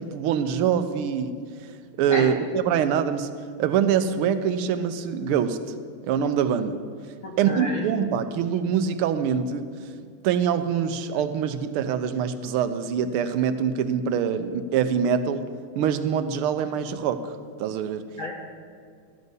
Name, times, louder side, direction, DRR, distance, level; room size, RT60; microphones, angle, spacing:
voice 1, 0.0-1.3 2.0-3.3 3.6-5.6 6.0-6.8 7.4-9.7 10.2-15.4 15.8-18.0, right 8 dB, 90° right, 10 dB, 1.5 m, -24 dB
voice 2, 2.1-2.4 7.2-7.8 18.2-18.3, left 2 dB, 55° left, 0 dB, 0.9 m, -31 dB
12.5 x 5.4 x 8.0 m, 2.1 s
omnidirectional pair, 2.3 m